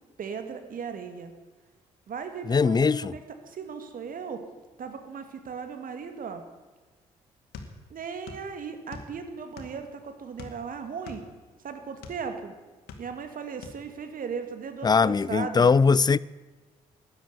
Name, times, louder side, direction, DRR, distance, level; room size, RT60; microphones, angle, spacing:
voice 1, 0.2-1.3 2.1-4.4 4.8-6.4 7.9-11.2 11.6-12.5 13.0-15.7, right 6 dB, 55° right, 2.3 m, -37 dB
voice 2, 2.5-3.1 14.8-16.2, left 5 dB, 25° left, 0.5 m, -21 dB
sound 1, 7.5-8.5 8.7-9.9 10.4-12.2 12.7-13.3 13.6-13.8, left 4 dB, 70° left, 2.1 m, -43 dB
13.0 x 10.5 x 9.7 m
hypercardioid pair, 45°, 17 cm